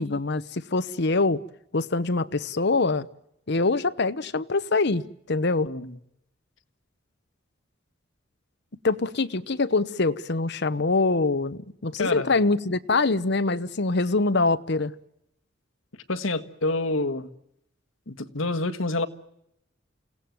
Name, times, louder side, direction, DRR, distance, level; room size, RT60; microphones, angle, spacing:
voice 1, 0.0-1.4 1.7-3.1 3.5-5.7 8.8-14.9, left 3 dB, 60° left, 1.0 m, -24 dB
voice 2, 12.0-12.3 16.1-17.3 18.1-19.1, left 2 dB, 80° left, 1.6 m, -27 dB
28.5 x 17.5 x 9.3 m
head